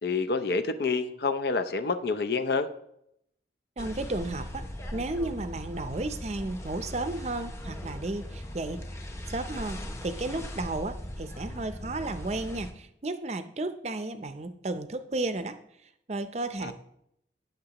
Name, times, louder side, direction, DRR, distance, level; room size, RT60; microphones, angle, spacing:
voice 1, 0.0-2.7 16.6-16.7, left 4 dB, 60° left, 9 dB, 0.6 m, -28 dB
sound 1, 3.8-12.7, left 1 dB, 15° left, 0.8 m, -39 dB
voice 2, 3.8-4.6 4.9-8.8 9.3-16.7, right 2 dB, 35° right, 10 dB, 0.5 m, -33 dB
16.0 x 6.5 x 2.9 m, 0.76 s
head